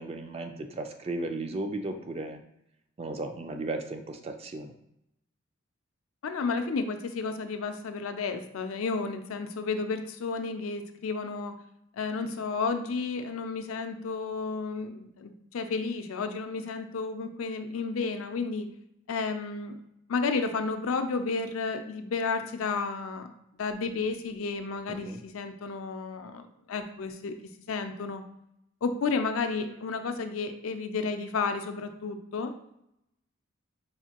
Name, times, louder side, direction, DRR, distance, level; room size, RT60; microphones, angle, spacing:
voice 1, 0.0-2.4 3.0-4.7 24.9-25.2, right 2 dB, 30° right, 6 dB, 0.3 m, -35 dB
voice 2, 6.2-11.5 12.0-18.7 19.1-19.8 20.1-23.3 23.5-27.4 27.7-28.2 28.8-32.5, left 4 dB, 80° left, 7 dB, 0.4 m, -32 dB
4.8 x 2.5 x 2.8 m, 0.78 s
head